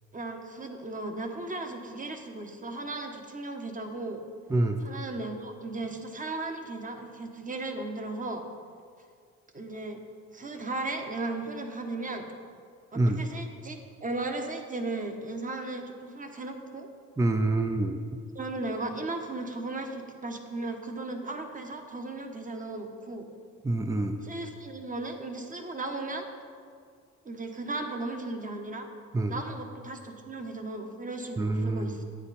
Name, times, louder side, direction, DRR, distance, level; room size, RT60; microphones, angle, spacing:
voice 1, 0.1-4.2 4.8-8.4 9.5-10.0 10.3-12.3 12.9-16.9 18.3-23.3 24.2-26.3 27.2-28.9 29.3-32.0, right 2 dB, 25° right, 5 dB, 1.2 m, -36 dB
voice 2, 4.5-4.8 12.9-13.2 17.2-18.0 23.6-24.2 29.1-29.4 31.4-32.0, right 2 dB, 10° right, 6 dB, 0.5 m, -26 dB
9.7 x 8.8 x 4.2 m, 2.1 s
cardioid pair, 90°, 30 cm